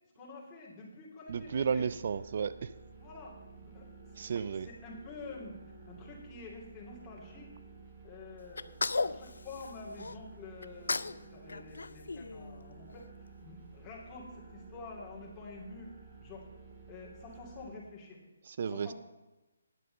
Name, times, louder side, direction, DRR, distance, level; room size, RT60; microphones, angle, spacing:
voice 1, 0.1-1.9 3.0-5.6 5.9-7.5 8.0-8.7 9.0-15.9 16.2-16.5 16.9-18.2 18.7-18.9, left 3 dB, 15° left, -5 dB, 2.9 m, -48 dB
sound 1, 1.3-17.7, right 4 dB, 30° right, 2.3 m, -53 dB
voice 2, 1.3-2.7 4.2-4.7 18.5-18.9, right 6 dB, 50° right, 15 dB, 0.3 m, -33 dB
Sneeze, 8.6-10.2 10.6-11.2 11.5-12.9, left 3 dB, 80° left, 0.4 m, -35 dB
10.0 x 7.6 x 6.6 m, 1.1 s
hypercardioid pair, 155°, 0 cm